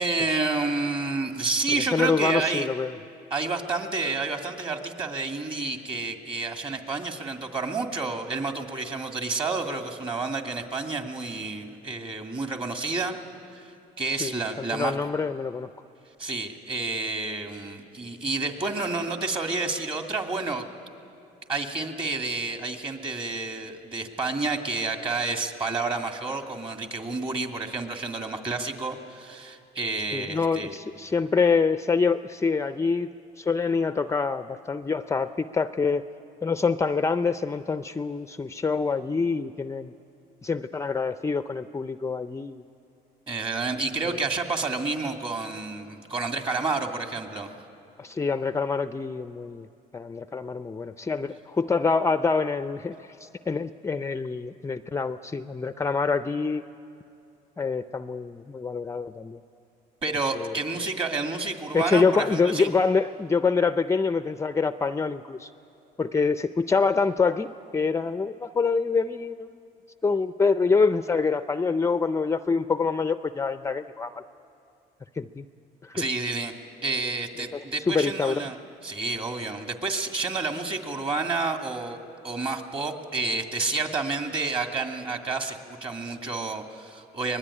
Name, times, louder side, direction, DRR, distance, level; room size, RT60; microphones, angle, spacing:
voice 1, 0.0-2.7 3.3-13.1 13.5-13.6 14.0-15.0 16.2-20.7 21.5-30.7 43.3-47.5 60.0-62.7 75.9-76.5 76.8-78.6 78.8-82.0 82.2-87.4, right 3 dB, 30° right, 4 dB, 2.4 m, -29 dB
voice 2, 1.9-3.0 14.1-15.7 30.1-36.0 36.4-39.9 40.4-42.6 44.1-44.2 48.0-49.7 49.9-56.6 57.6-59.4 60.3-60.5 61.7-65.5 66.0-69.5 70.0-74.2 75.1-75.5 75.8-76.0 77.5-78.4, left 4 dB, 15° left, 10 dB, 0.5 m, -26 dB
24.0 x 20.5 x 9.9 m, 2.8 s
cardioid pair, 110°, 17 cm